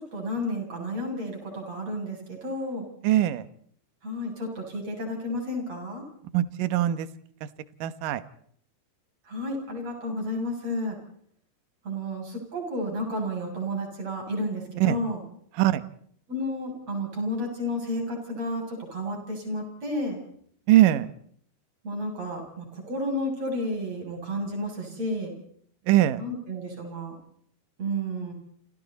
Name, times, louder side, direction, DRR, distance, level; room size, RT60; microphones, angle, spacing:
voice 1, 0.0-2.8 4.0-6.0 9.3-11.0 11.8-15.2 16.3-20.2 21.8-25.3 26.2-27.2 27.8-28.3, equal, 35° right, 1 dB, 8.4 m, -31 dB
voice 2, 3.0-3.5 6.3-7.1 7.4-7.5 7.8-8.2 14.8-15.0 15.5-15.8 20.7-21.1 25.9-26.2, right 13 dB, 65° right, 13 dB, 2.4 m, -21 dB
29.5 x 28.0 x 4.2 m, 0.62 s
omnidirectional pair, 4.9 m